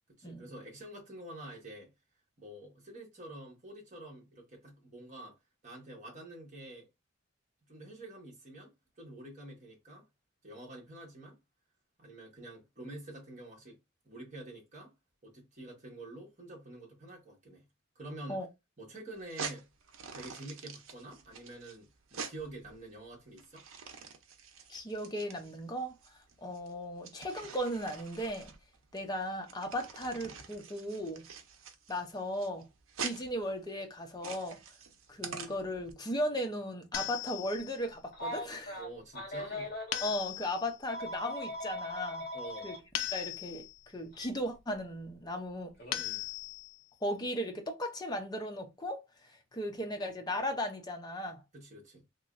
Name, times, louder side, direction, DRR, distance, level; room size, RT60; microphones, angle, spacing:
voice 1, 0.2-1.9 2.4-5.4 5.6-6.9 7.7-10.1 10.4-11.4 12.0-13.8 14.0-14.9 15.2-17.7 17.9-18.4 18.8-19.7 20.1-23.6 38.8-39.7 42.3-42.7 45.9-46.2 51.5-52.0, right 1 dB, 35° right, 1.4 m, -48 dB
sound 1, 19.2-35.9, right 5 dB, 80° right, 0.6 m, -46 dB
voice 2, 24.7-26.0 26.4-28.5 28.9-31.3 31.9-32.7 33.0-34.6 35.1-38.8 40.0-42.3 42.6-43.6 43.9-45.7 47.0-49.0 49.5-51.4, equal, 20° left, 0.6 m, -36 dB
sound 2, 36.9-37.9 39.9-40.8 42.9-43.8 45.9-46.8, left 12 dB, 65° left, 0.4 m, -38 dB
Telephone, 38.1-40.0 40.9-42.8 44.1-44.3 45.8-46.0, left 1 dB, 45° left, 1.5 m, -40 dB
3.0 x 3.0 x 2.4 m
head